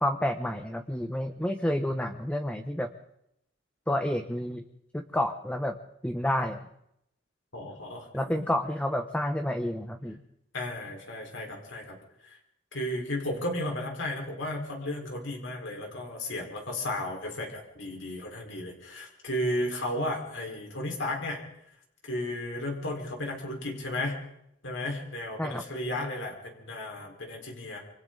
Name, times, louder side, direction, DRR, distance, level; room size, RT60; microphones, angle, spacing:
voice 1, 0.0-2.9 3.9-4.6 4.9-5.8 6.0-6.7 8.1-10.2 25.4-25.6, left 1 dB, 5° left, 6 dB, 1.1 m, -29 dB
voice 2, 7.5-8.4 10.5-12.0 12.2-12.4 12.7-21.4 22.0-24.2 24.6-27.8, left 1 dB, 75° left, 1 dB, 4.6 m, -34 dB
27.5 x 25.5 x 4.0 m, 0.77 s
head